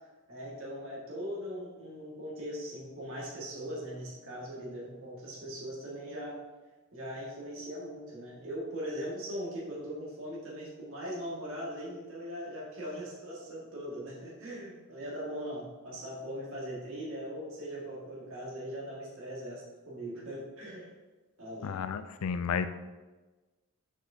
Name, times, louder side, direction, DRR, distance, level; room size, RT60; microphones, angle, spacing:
voice 1, 0.3-6.4 6.9-20.9 21.4-21.7, equal, 65° right, -5 dB, 1.9 m, -40 dB
voice 2, 21.6-22.7, left 6 dB, 80° left, 11 dB, 0.4 m, -32 dB
6.2 x 6.0 x 2.8 m, 1.2 s
head